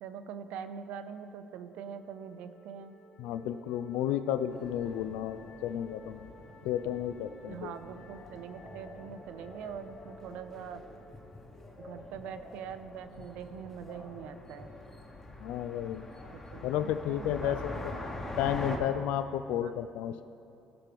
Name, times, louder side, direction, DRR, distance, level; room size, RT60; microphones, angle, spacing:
voice 1, 0.0-3.0 7.5-10.8 11.8-14.7 16.3-17.8 18.4-18.9 19.6-19.7, right 7 dB, 75° right, 10 dB, 0.6 m, -43 dB
Wind instrument woodwind instrument, 1.7-12.0, right 2 dB, 60° left, 1.1 m, -57 dB
voice 2, 3.2-6.3 6.6-7.7 15.4-16.1 16.6-18.0 18.4-20.2, left 10 dB, 90° left, 11 dB, 0.3 m, -32 dB
sound 1, 4.5-18.8, left 2 dB, 15° left, 1.0 m, -45 dB
16.5 x 6.0 x 3.4 m, 2.9 s
cardioid pair, 155°, 2 cm